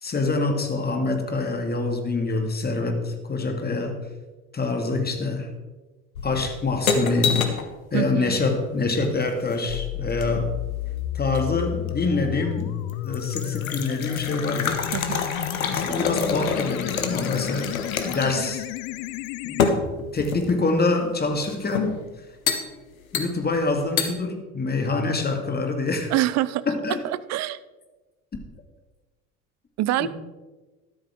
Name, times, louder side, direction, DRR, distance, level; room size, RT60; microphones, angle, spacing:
voice 1, 0.0-4.0 4.5-5.5 6.2-7.5 7.9-10.5 11.1-12.7 13.0-14.9 15.7-17.8 18.0-18.7 19.4-19.7 20.1-22.0 23.1-26.1 26.7-27.0 30.0-30.1, left 3 dB, 25° left, 5 dB, 2.2 m, -25 dB
sound 1, 6.2-7.7 9.2-10.6 11.3-12.0 12.5-12.6 12.9-18.5 18.8-18.9 19.6-20.6 21.4-22.0 22.5-22.7 23.1-23.6 24.0-24.1, left 5 dB, 80° left, 1.3 m, -27 dB
voice 2, 7.9-8.4 14.9-15.2 26.1-26.6 27.3-27.6 29.8-30.1, right 15 dB, 40° right, 17 dB, 0.6 m, -25 dB
sound 2, 9.7-19.7, left 14 dB, 45° left, 0.5 m, -32 dB
13.0 x 12.5 x 3.7 m, 1.2 s
figure-of-eight pair, 65°, 41 cm